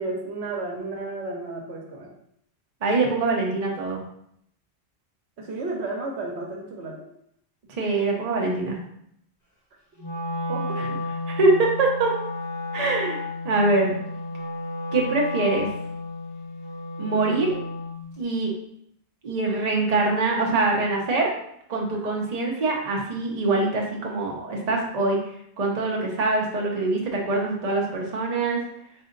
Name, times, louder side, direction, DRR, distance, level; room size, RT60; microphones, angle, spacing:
voice 1, 0.0-2.1 5.4-7.0 10.5-10.8 21.9-22.2, right 3 dB, 75° right, 0 dB, 1.0 m, -32 dB
voice 2, 2.8-4.0 7.8-8.8 11.3-12.1 12.7-13.9 14.9-15.7 17.0-17.5 18.2-18.5 19.2-21.3 21.7-25.2 25.6-28.6, right 3 dB, 40° right, -1 dB, 0.8 m, -24 dB
Wind instrument woodwind instrument, 10.0-18.0, left 2 dB, 15° left, 1.1 m, -32 dB
4.1 x 2.5 x 3.8 m, 0.71 s
omnidirectional pair, 1.2 m